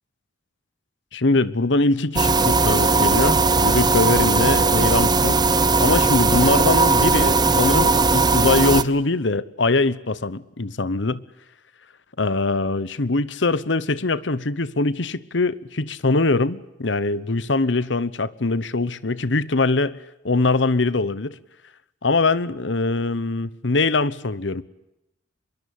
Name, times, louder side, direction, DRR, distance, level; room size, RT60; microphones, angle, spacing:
voice 1, 1.1-5.4 5.8-11.2 12.2-20.0 20.2-21.4 22.0-24.6, left 3 dB, 70° left, 1.0 m, -22 dB
sound 1, 2.2-8.8, right 3 dB, 20° right, 1.0 m, -18 dB
25.0 x 22.5 x 8.5 m
head